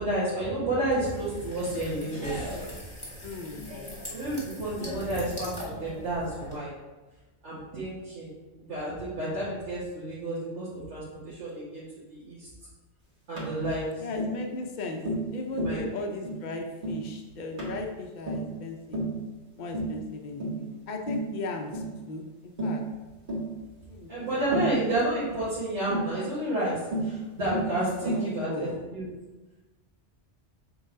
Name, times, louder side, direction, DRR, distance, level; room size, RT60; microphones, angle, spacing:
voice 1, 0.0-2.5 4.1-6.7 7.4-8.3 8.7-12.5 13.3-14.0 15.5-16.0 24.1-29.1, right 1 dB, 75° right, -11 dB, 1.9 m, -31 dB
sound 1, 0.9-6.6, left 1 dB, 5° left, 1.6 m, -40 dB
voice 2, 3.2-3.7 14.0-15.0 15.3-19.0 19.6-22.2 22.6-22.8 23.9-24.3 27.9-28.8, left 3 dB, 45° left, 2 dB, 0.8 m, -37 dB
Tap, 13.4-13.5 14.2-14.4 15.0-15.3 15.6-15.8 16.2-16.4 16.8-17.0 17.6-17.8 18.3-18.5 18.9-19.2 19.7-20.0 20.4-20.6 21.1-21.3 21.7-21.9 22.6-22.8 23.3-23.5 24.5-24.8 25.9-26.1 26.9-27.1 27.5-27.7 28.1-28.3, right 1 dB, 45° right, 1.8 m, -31 dB
6.6 x 4.0 x 3.8 m, 1.2 s
omnidirectional pair, 1.2 m